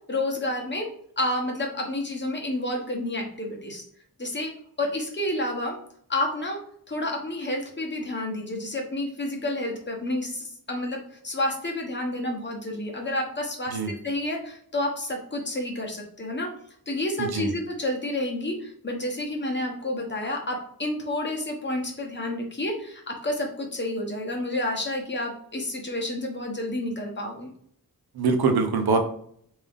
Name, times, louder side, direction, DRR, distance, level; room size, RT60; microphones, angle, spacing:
voice 1, 0.1-0.9 1.2-3.8 4.2-4.5 4.8-5.8 6.1-6.6 6.9-16.5 16.9-27.5, left 1 dB, 30° left, 1 dB, 0.9 m, -30 dB
voice 2, 17.2-17.5 28.1-29.0, right 4 dB, 85° right, 5 dB, 0.7 m, -23 dB
3.5 x 2.7 x 3.5 m, 0.63 s
wide cardioid pair, 95°, 37 cm